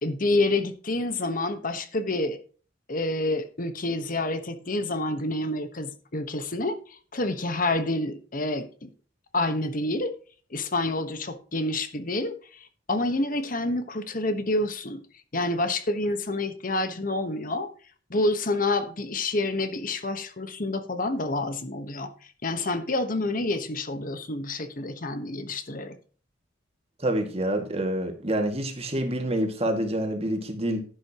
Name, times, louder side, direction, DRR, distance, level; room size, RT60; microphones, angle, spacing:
voice 1, 0.0-2.4 2.9-8.9 9.3-10.1 10.5-15.0 15.3-17.7 18.1-22.1 22.4-26.0, left 2 dB, 45° left, 1.2 m, -28 dB
voice 2, 27.0-30.8, right 1 dB, 35° right, 2.1 m, -27 dB
11.5 x 11.0 x 3.0 m
head